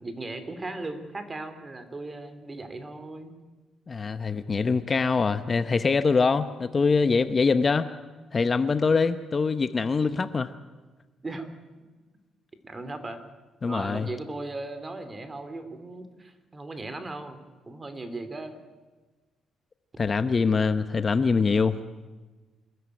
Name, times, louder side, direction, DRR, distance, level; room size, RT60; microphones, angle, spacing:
voice 1, 0.0-3.4 11.2-11.5 12.6-13.2 13.6-18.6, right 2 dB, 25° right, 10 dB, 2.8 m, -37 dB
voice 2, 3.9-7.9 8.3-10.5 13.6-14.1 20.0-21.8, left 4 dB, 35° left, 11 dB, 0.9 m, -24 dB
25.0 x 14.0 x 9.5 m, 1.3 s
cardioid pair, 90°, 0 cm